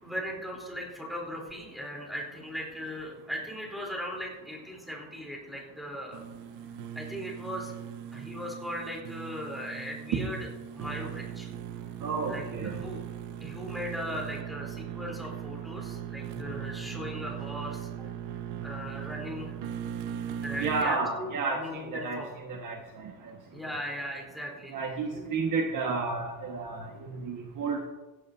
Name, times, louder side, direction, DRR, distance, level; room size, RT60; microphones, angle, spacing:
voice 1, 0.0-6.2 7.0-7.7 8.1-10.4 10.7-11.5 12.3-13.0 13.4-18.1 18.6-19.6 20.4-22.3 23.5-24.7 25.1-25.3, equal, ahead, -2 dB, 3.9 m, -38 dB
sound 1, 6.1-20.9, right 9 dB, 75° right, 1.2 m, -39 dB
voice 2, 12.0-12.8 16.4-16.5 20.6-23.1 24.7-27.9, right 4 dB, 40° right, 1 dB, 1.7 m, -31 dB
16.0 x 16.0 x 2.8 m, 1.2 s
cardioid pair, 165°, 48 cm